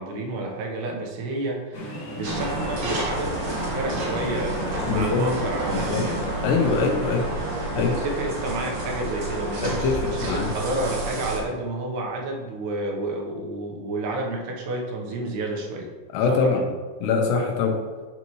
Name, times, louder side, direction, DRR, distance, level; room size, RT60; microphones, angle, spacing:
voice 1, 0.0-6.3 7.7-15.9 16.3-16.7, right 2 dB, 80° right, 0 dB, 3.1 m, -30 dB
sound 1, 1.7-7.6, equal, 70° left, 1.9 m, -35 dB
sound 2, 2.2-11.4, right 1 dB, 60° right, 2.1 m, -30 dB
voice 2, 4.9-5.3 5.7-6.0 6.4-7.2 7.8-7.9 9.6-10.5 16.1-16.6 17.0-17.7, left 5 dB, 85° left, 1 dB, 3.2 m, -23 dB
11.0 x 4.1 x 3.1 m, 1.5 s
omnidirectional pair, 4.7 m